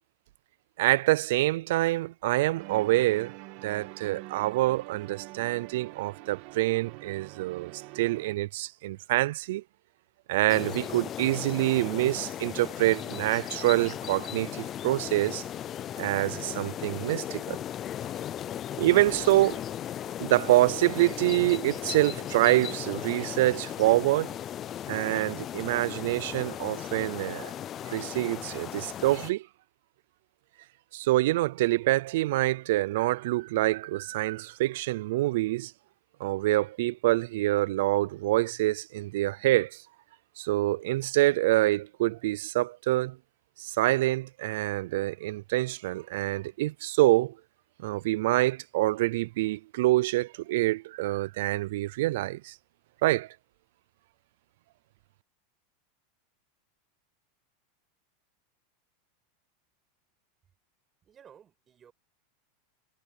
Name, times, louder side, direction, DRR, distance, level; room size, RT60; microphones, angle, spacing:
voice 1, 0.8-3.3 3.6-9.6 10.3-15.4 16.0-17.6 18.8-19.6 20.2-24.3 24.9-27.5 27.8-29.5 30.9-35.7 36.2-39.8 40.4-43.2 43.6-47.3 47.8-52.5 53.0-53.3, right 17 dB, 65° right, 0.4 m, -26 dB
sound 1, 2.6-8.4, right 20 dB, 45° right, 1.8 m, -45 dB
sound 2, 10.5-29.3, left 10 dB, 25° left, 0.3 m, -37 dB
sound 3, 19.0-21.1, right 1 dB, ahead, 5.5 m, -60 dB
voice 2, 61.0-61.9, right 8 dB, 20° right, 5.6 m, -55 dB
supercardioid pair, 165°, 0 cm